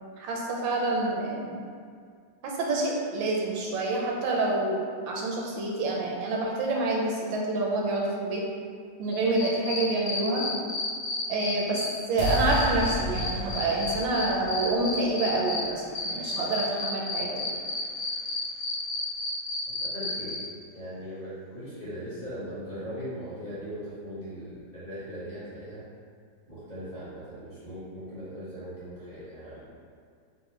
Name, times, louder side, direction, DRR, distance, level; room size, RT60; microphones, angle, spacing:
voice 1, 0.2-1.6 2.4-4.8 5.0-8.4 9.0-10.5 11.3-17.5, right 2 dB, 85° right, -2 dB, 1.3 m, -27 dB
sound 1, 9.1-11.9 12.2-15.6 15.9-20.4, left 3 dB, 60° left, 1.3 m, -32 dB
sound 2, 12.2-18.3, equal, 80° left, 1.3 m, -35 dB
voice 2, 19.9-20.4 20.7-25.8 26.5-29.6, equal, 35° left, -13 dB, 0.7 m, -39 dB
4.0 x 2.1 x 2.9 m, 2.1 s
omnidirectional pair, 2.0 m